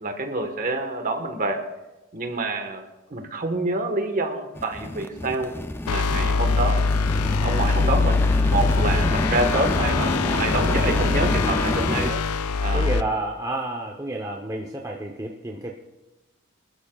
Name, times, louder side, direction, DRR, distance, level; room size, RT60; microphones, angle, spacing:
voice 1, 0.0-1.6 2.1-2.8 3.1-5.5 5.8-6.9 7.4-8.2 8.5-12.2 12.6-12.9, right 2 dB, 35° right, 5 dB, 1.3 m, -27 dB
sound 1, 4.6-12.1, left 1 dB, 10° left, 0.4 m, -27 dB
sound 2, 5.9-13.0, left 4 dB, 85° left, 0.6 m, -23 dB
voice 2, 12.7-15.7, right 2 dB, 15° right, 0 dB, 0.8 m, -30 dB
24.5 x 13.0 x 2.4 m, 1.0 s
head